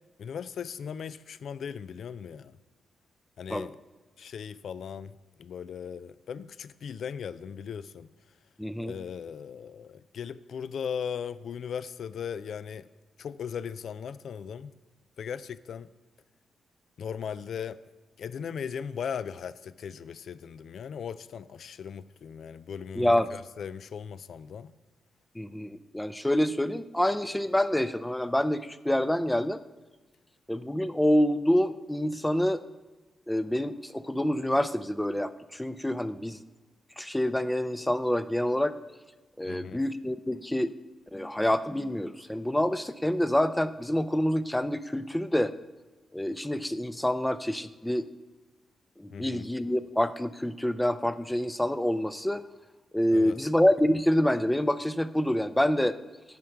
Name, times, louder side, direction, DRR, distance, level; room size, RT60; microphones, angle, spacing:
voice 1, 0.2-2.6 3.4-3.8 4.2-5.1 5.4-8.1 8.8-12.9 13.2-14.7 15.2-15.9 17.0-17.8 18.2-24.7 39.4-39.8 49.1-49.4 53.1-53.4, left 7 dB, 70° left, 17 dB, 0.3 m, -38 dB
voice 2, 8.6-8.9 23.0-23.3 25.4-29.6 30.5-32.6 33.3-36.4 37.0-38.8 39.4-40.7 41.1-45.5 46.1-48.1 49.0-52.4 52.9-56.0, left 1 dB, 5° left, 13 dB, 0.4 m, -27 dB
9.3 x 6.6 x 5.8 m, 1.2 s
cardioid pair, 95°, 0 cm